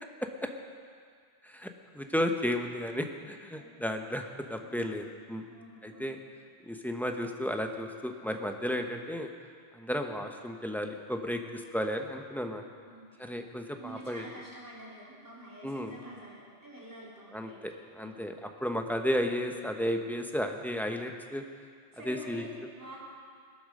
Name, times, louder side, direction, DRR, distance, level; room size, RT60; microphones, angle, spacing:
voice 1, 1.4-5.5 5.8-6.2 6.6-9.3 9.7-12.6 13.2-14.2 15.6-15.9 17.3-21.4 22.0-22.4, equal, ahead, 4 dB, 0.8 m, -33 dB
voice 2, 5.5-6.1 12.9-13.3 13.8-17.6 18.0-18.2 21.9-23.0, right 1 dB, 15° right, -7 dB, 3.8 m, -48 dB
21.5 x 8.8 x 6.6 m, 2.1 s
omnidirectional pair, 1.2 m